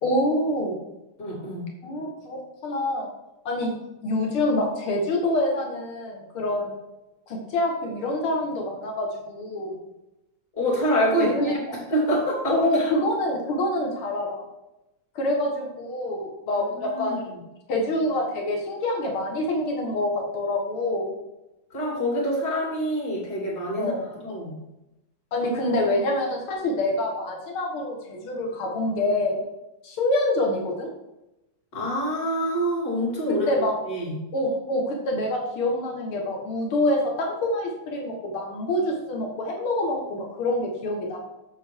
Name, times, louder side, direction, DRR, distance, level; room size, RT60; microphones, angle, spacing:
voice 1, 0.0-0.8 1.8-3.1 3.5-3.7 4.0-6.8 7.3-9.8 11.2-11.6 12.5-14.4 15.2-17.3 17.7-21.1 23.8-24.1 25.3-29.4 29.8-30.9 33.5-33.7 34.3-41.2, left 1 dB, 80° left, 0 dB, 2.5 m, -26 dB
voice 2, 1.2-1.7 10.6-12.9 16.5-17.4 21.7-23.9 24.2-24.5 31.7-33.5 33.9-34.1, equal, 45° left, -4 dB, 3.6 m, -26 dB
8.4 x 7.4 x 4.7 m, 0.94 s
omnidirectional pair, 2.3 m